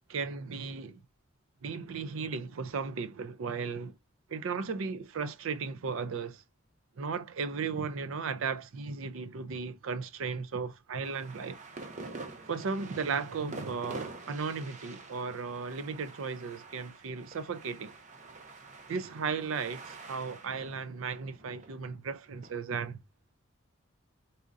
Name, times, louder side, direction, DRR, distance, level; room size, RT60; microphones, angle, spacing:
voice 1, 0.1-1.0 1.6-3.9 4.3-6.4 7.0-11.6 12.5-17.9 18.9-23.0, right 5 dB, 75° right, 0.5 m, -35 dB
sound 1, 11.0-22.5, right 3 dB, 35° right, 0.7 m, -47 dB
4.2 x 3.7 x 2.4 m
head